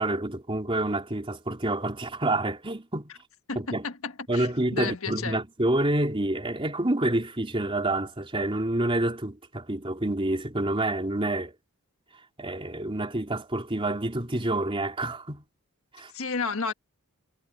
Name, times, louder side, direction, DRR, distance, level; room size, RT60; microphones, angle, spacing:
voice 1, 0.0-3.1 3.5-3.8 4.3-11.5 12.4-15.4 15.9-16.1, right 1 dB, 25° right, 3.3 m, -28 dB
voice 2, 3.5-5.4 16.1-16.7, left 4 dB, 75° left, 1.5 m, -32 dB
head